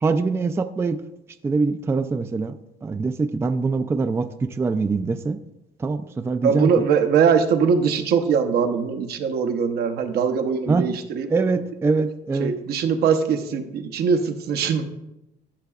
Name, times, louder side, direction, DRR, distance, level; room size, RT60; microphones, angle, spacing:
voice 1, 0.0-1.0 1.4-2.5 2.8-5.4 5.8-6.7 10.7-10.8 11.3-12.5, right 4 dB, 15° right, 10 dB, 0.3 m, -23 dB
voice 2, 6.4-11.3 12.4-14.8, right 6 dB, 70° right, 7 dB, 0.9 m, -21 dB
11.5 x 6.6 x 2.4 m, 0.92 s
cardioid pair, 110°, 17 cm